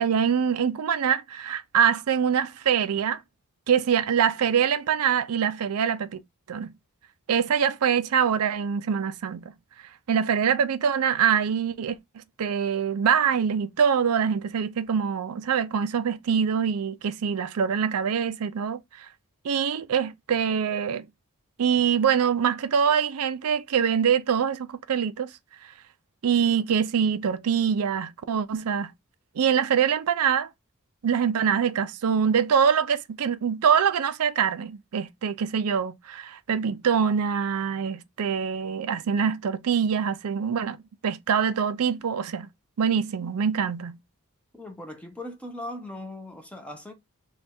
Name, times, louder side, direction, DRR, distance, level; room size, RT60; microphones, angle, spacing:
voice 1, 0.0-3.2 3.7-6.2 6.5-6.7 7.3-9.4 10.1-12.0 12.4-19.1 19.4-21.0 21.6-25.3 26.2-28.9 29.4-30.5 31.0-40.8 41.0-42.5 42.8-44.0, right 7 dB, 80° right, 0.4 m, -24 dB
voice 2, 44.5-46.9, left 1 dB, 5° left, 0.7 m, -39 dB
3.3 x 2.3 x 4.2 m
head